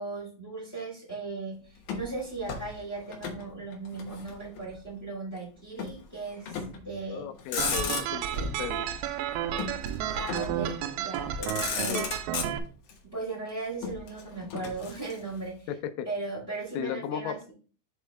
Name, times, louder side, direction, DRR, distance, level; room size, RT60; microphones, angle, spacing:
voice 1, 0.0-7.3 8.3-8.5 10.1-12.1 13.1-15.7 16.0-17.5, right 3 dB, 15° left, -3 dB, 2.5 m, -37 dB
Motor vehicle (road), 1.8-3.5 3.7-4.8 5.8-6.0 6.5-6.9 7.3-8.4 9.6-10.6 11.1-11.2 11.4-12.9 13.8-15.5, left 6 dB, 70° left, 2.2 m, -35 dB
voice 2, 7.1-8.3 8.6-8.9 11.9-12.1 15.7-16.1 16.7-17.5, left 9 dB, 90° left, 10 dB, 3.3 m, -35 dB
sound 1, 7.6-12.6, right 9 dB, 85° right, 2.8 m, -32 dB
6.9 x 4.6 x 3.2 m, 0.38 s
omnidirectional pair, 5.7 m